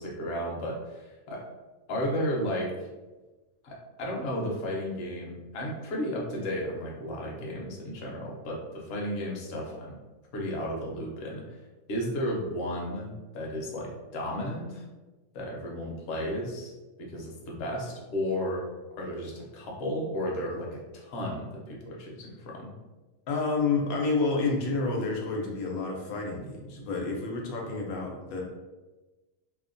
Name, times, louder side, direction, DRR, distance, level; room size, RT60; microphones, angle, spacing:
voice 1, 0.0-1.5 1.9-2.7 3.6-10.0 10.3-11.4 11.9-14.8 15.3-16.7 17.0-18.6 19.0-22.7, equal, 65° left, -2 dB, 0.8 m, -33 dB
voice 2, 23.3-28.4, left 3 dB, 90° left, -1 dB, 1.1 m, -29 dB
2.7 x 2.1 x 2.5 m, 1.2 s
omnidirectional pair, 1.4 m